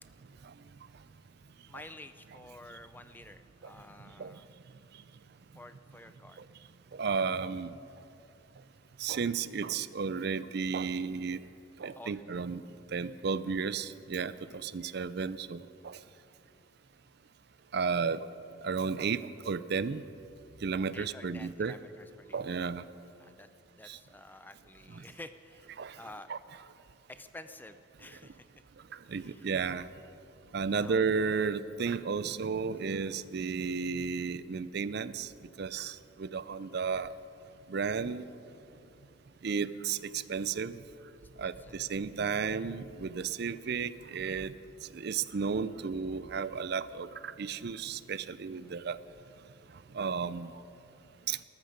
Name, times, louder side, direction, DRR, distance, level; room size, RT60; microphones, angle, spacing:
voice 1, 1.7-4.5 5.6-6.4 12.0-12.2 14.4-14.6 20.9-22.6 23.2-23.5 23.8-26.3 27.1-28.5 29.1-29.5 30.8-31.0 36.5-36.7 41.4-41.7 48.4-48.8, left 2 dB, 10° left, 10 dB, 0.4 m, -51 dB
voice 2, 6.9-7.7 9.0-11.4 11.8-12.6 12.9-16.0 17.7-18.2 18.6-19.2 19.4-20.0 20.6-21.8 22.3-22.8 23.8-24.0 24.9-25.0 25.8-26.0 26.3-26.4 28.9-29.9 30.5-35.3 35.6-37.1 37.7-38.2 39.4-40.8 41.4-44.5 44.9-49.0 49.9-50.5 51.3-51.4, right 5 dB, 50° right, 15 dB, 0.4 m, -33 dB
19.5 x 13.5 x 5.2 m, 2.7 s
head